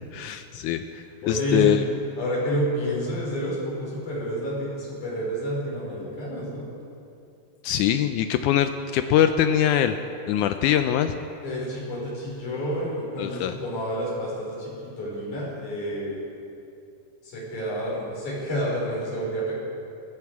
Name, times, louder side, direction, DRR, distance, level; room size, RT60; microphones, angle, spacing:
voice 1, 0.1-1.8 7.6-10.0 10.3-11.2 13.2-13.5, left 10 dB, 90° left, 9 dB, 1.7 m, -23 dB
voice 2, 1.2-1.8 2.2-6.6 11.4-16.2 17.2-19.5, equal, 60° left, -5 dB, 6.3 m, -29 dB
19.0 x 15.5 x 4.8 m, 2.6 s
omnidirectional pair, 4.1 m